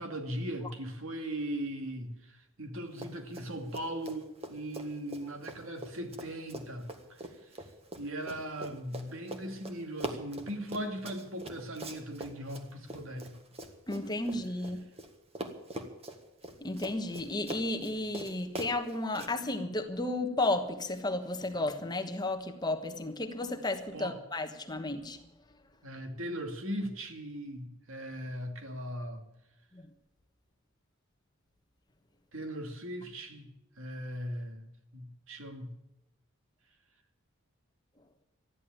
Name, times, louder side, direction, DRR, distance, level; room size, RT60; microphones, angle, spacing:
voice 1, 0.0-7.2 7.6-7.7 8.0-13.3 23.9-24.2 25.8-29.2 32.3-33.5 33.8-35.7, right 1 dB, 70° right, 5 dB, 2.4 m, -39 dB
Run, 2.9-3.5 3.7-15.1 15.4-19.3, right 1 dB, 30° right, 1.6 m, -42 dB
voice 2, 13.9-14.8 16.6-25.2, left 2 dB, 20° left, 7 dB, 1.3 m, -33 dB
14.0 x 11.0 x 9.0 m, 0.89 s
head